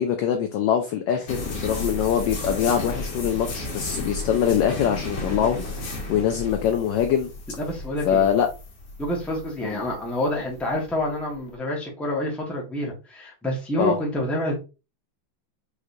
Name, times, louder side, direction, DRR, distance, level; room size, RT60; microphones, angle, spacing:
voice 1, 0.0-7.3 8.0-8.5 9.6-9.8 13.8-14.0, left 8 dB, 75° left, 1.1 m, -23 dB
sound 1, 1.3-11.4, left 2 dB, 55° left, 1.8 m, -33 dB
voice 2, 7.6-8.3 9.0-14.6, left 1 dB, ahead, 1.0 m, -28 dB
5.0 x 3.2 x 2.6 m
omnidirectional pair, 2.2 m